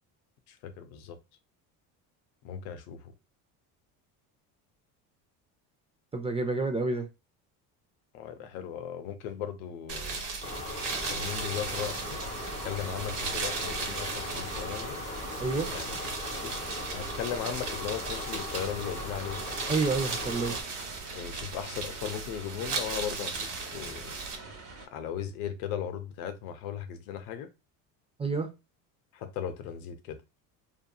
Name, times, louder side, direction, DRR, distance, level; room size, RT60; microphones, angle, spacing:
voice 1, 0.5-1.2 2.4-3.1 8.1-10.2 11.0-12.3 12.6-15.0 15.7-16.0 16.3-16.5 16.9-19.4 21.1-24.1 24.9-27.5 29.1-30.2, left 9 dB, 90° left, 0.6 m, -37 dB
voice 2, 6.1-7.0 15.4-15.7 19.7-20.5 28.2-28.5, right 3 dB, 15° right, 0.3 m, -28 dB
sound 1, 9.9-24.4, right 4 dB, 75° right, 1.1 m, -37 dB
sound 2, 10.4-20.6, left 2 dB, 15° left, 0.7 m, -39 dB
sound 3, 11.6-24.9, right 3 dB, 30° right, 1.0 m, -46 dB
2.7 x 2.6 x 2.2 m
supercardioid pair, 90°, 42 cm